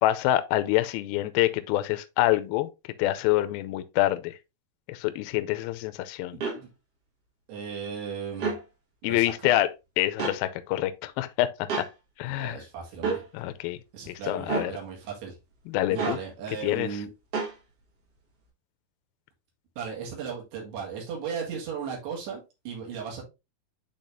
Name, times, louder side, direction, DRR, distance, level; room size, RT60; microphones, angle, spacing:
voice 1, 0.0-2.7 3.0-4.4 4.9-6.4 9.0-9.7 10.0-11.9 12.2-12.6 13.3-13.8 14.1-14.7 15.7-16.2 16.6-16.9, left 15 dB, 85° left, 2.2 m, -26 dB
voice 2, 6.3-6.7 7.5-8.5 9.1-9.3 12.3-13.2 13.9-15.4 15.9-17.1 19.8-23.2, right 6 dB, 80° right, 4.0 m, -36 dB
sound 1, 6.4-6.6 8.3-8.6 10.2-10.4 11.7-11.9 13.0-13.2 14.5-14.7 16.0-16.2 17.3-17.5, right 4 dB, 50° right, 1.9 m, -29 dB
10.0 x 3.6 x 2.6 m
omnidirectional pair, 4.7 m